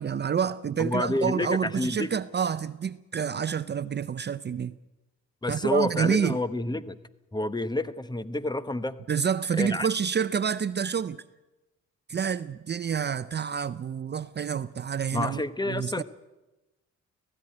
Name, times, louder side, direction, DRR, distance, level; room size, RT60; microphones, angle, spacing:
voice 1, 0.0-4.7 5.5-6.4 9.1-11.2 12.1-15.4 15.7-16.0, right 7 dB, 35° right, 0.6 m, -28 dB
voice 2, 0.8-2.1 5.4-7.0 7.3-9.0 9.6-9.9 15.1-16.0, left 2 dB, 15° left, 1.0 m, -29 dB
17.5 x 15.5 x 9.8 m
cardioid pair, 90°, 30 cm